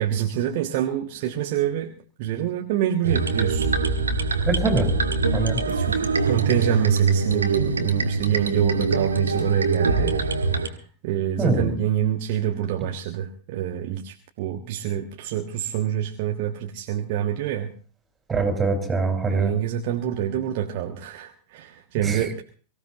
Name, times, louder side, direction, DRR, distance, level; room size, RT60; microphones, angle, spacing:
voice 1, 0.0-1.9 2.2-3.7 5.7-10.2 10.6-17.7 19.3-22.4, right 10 dB, 50° right, 3 dB, 1.4 m, -26 dB
sound 1, 3.0-10.7, right 4 dB, 75° right, 1.8 m, -23 dB
voice 2, 4.5-4.9 5.3-5.6 11.4-11.8 18.3-19.5 22.0-22.2, right 3 dB, 15° right, 5 dB, 4.5 m, -23 dB
24.0 x 16.0 x 2.9 m, 0.41 s
figure-of-eight pair, 90°, 0 cm